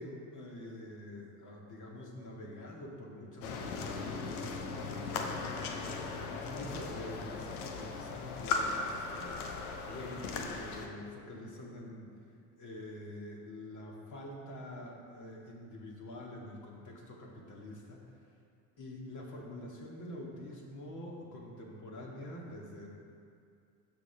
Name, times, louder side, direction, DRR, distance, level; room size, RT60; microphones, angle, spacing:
voice 1, 0.0-5.3 5.9-9.4 9.8-12.1 12.6-18.0 18.8-22.9, left 1 dB, 40° left, -2 dB, 2.2 m, -46 dB
sound 1, 3.4-10.9, left 4 dB, 75° left, 1.0 m, -38 dB
11.5 x 7.1 x 3.5 m, 2.4 s
hypercardioid pair, 65°, 44 cm